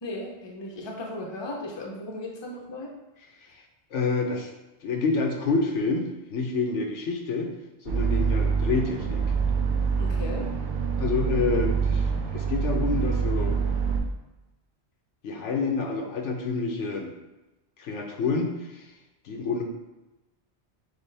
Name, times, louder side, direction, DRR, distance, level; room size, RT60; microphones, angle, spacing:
voice 1, 0.0-2.9 10.0-10.5, left 1 dB, 30° left, -1 dB, 0.6 m, -36 dB
voice 2, 3.9-4.5 4.8-7.5 7.8-9.3 11.0-13.6 15.2-17.1 17.8-18.8 19.2-19.6, left 4 dB, 90° left, 2 dB, 1.1 m, -28 dB
sound 1, 7.9-14.0, right 5 dB, 50° right, 0.7 m, -25 dB
6.6 x 2.3 x 3.3 m, 1.0 s
omnidirectional pair, 1.2 m